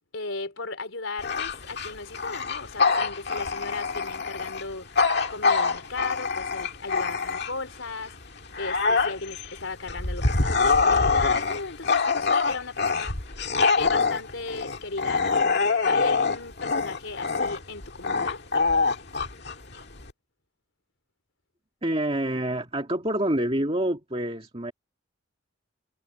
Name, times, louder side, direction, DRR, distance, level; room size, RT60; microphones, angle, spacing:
voice 1, 0.1-13.3 13.8-18.4, left 3 dB, 70° left, 3.6 m, -36 dB
Bark / Growling, 1.2-7.7 8.2-20.1, left 4 dB, 55° left, 2.0 m, -25 dB
voice 2, 21.8-24.7, right 1 dB, 30° right, 2.3 m, -27 dB
head